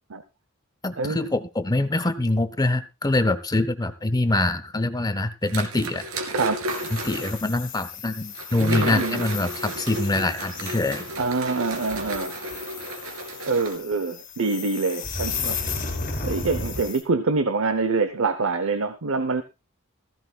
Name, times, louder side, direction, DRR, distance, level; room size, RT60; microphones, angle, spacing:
voice 1, 0.8-6.1 6.9-11.1, left 2 dB, 20° left, 12 dB, 0.8 m, -24 dB
sound 1, 5.5-7.5 8.3-13.7, right 1 dB, 85° right, 2.8 m, -33 dB
sound 2, 6.7-17.0, left 4 dB, 40° left, 3.6 m, -35 dB
voice 2, 8.6-9.2 11.2-12.4 13.5-15.6 16.2-19.4, right 3 dB, 65° right, 11 dB, 0.9 m, -25 dB
15.5 x 15.5 x 2.4 m, 0.26 s
head